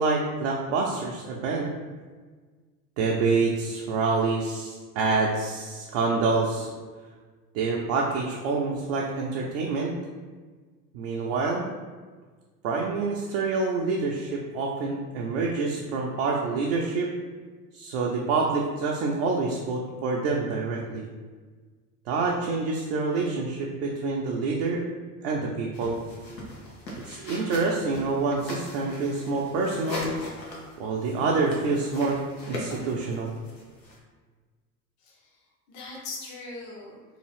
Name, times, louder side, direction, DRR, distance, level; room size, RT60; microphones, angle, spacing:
voice 1, 0.0-1.7 3.0-6.7 7.5-9.9 10.9-11.6 12.6-17.1 17.7-21.0 22.1-24.8 25.2-26.0 27.0-30.1 30.8-32.2 32.5-33.3, right 3 dB, 50° right, -2 dB, 0.5 m, -27 dB
sound 1, 25.7-33.9, left 1 dB, 85° left, 0.8 m, -40 dB
voice 2, 35.0-37.0, left 3 dB, 45° left, -3 dB, 0.9 m, -41 dB
2.7 x 2.4 x 3.2 m, 1.4 s
figure-of-eight pair, 70°, 49 cm